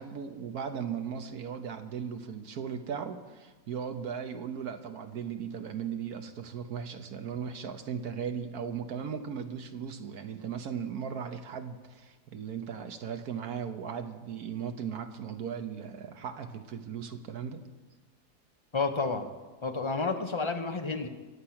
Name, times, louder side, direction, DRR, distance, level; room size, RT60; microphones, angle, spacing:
voice 1, 0.0-17.6, right 7 dB, 70° right, 7 dB, 1.6 m, -37 dB
voice 2, 18.7-19.3 19.6-21.1, left 4 dB, 20° left, 6 dB, 0.9 m, -30 dB
23.5 x 8.2 x 5.9 m, 1.3 s
omnidirectional pair, 1.7 m